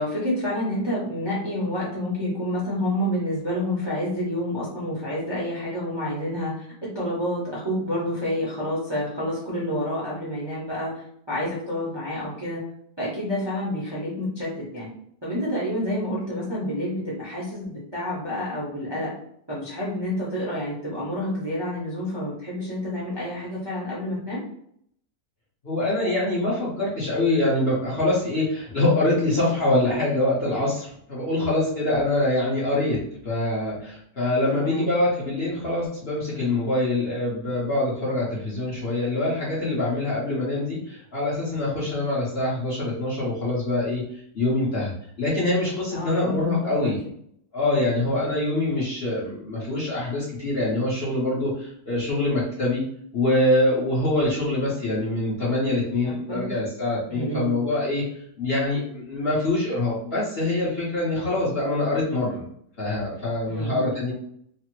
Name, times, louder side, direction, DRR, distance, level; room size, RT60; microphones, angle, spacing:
voice 1, 0.0-12.6 13.0-14.9 15.2-19.1 19.5-24.4 31.8-32.1 34.5-34.9 41.8-42.0 45.9-46.9 48.0-48.4 56.0-56.5 57.1-57.5 61.2-61.3 63.4-64.1, left 1 dB, 25° right, -7 dB, 0.5 m, -29 dB
voice 2, 25.6-33.0 33.2-44.0 44.3-44.9 45.2-47.0 47.5-52.8 53.1-58.0 58.4-62.4 62.8-64.1, left 2 dB, 45° left, -7 dB, 0.8 m, -24 dB
3.2 x 2.0 x 3.0 m, 0.68 s
omnidirectional pair, 1.8 m